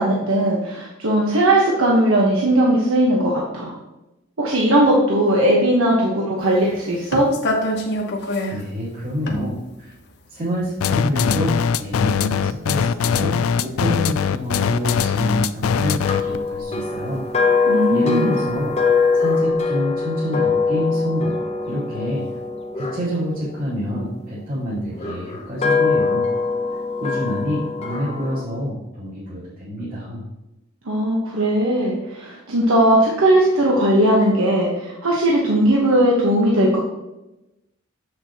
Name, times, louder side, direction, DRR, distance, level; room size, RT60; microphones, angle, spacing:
voice 1, 0.0-3.7 4.4-7.3 17.7-18.3 30.8-36.8, right 1 dB, 90° right, -3 dB, 1.2 m, -18 dB
sound 1, 6.5-14.6 14.8-18.6 19.0-19.4, left 1 dB, 55° left, 1.0 m, -29 dB
voice 2, 8.5-9.9 10.3-17.2 17.5-18.7 19.1-21.4 21.6-22.3 22.7-26.3 27.0-30.3, equal, 45° right, -11 dB, 2.7 m, -27 dB
sound 2, 10.8-16.4, left 7 dB, 90° left, 0.4 m, -21 dB
sound 3, 16.0-24.2 24.9-28.4, left 4 dB, 30° left, 0.8 m, -23 dB
7.6 x 6.6 x 2.9 m, 0.96 s
head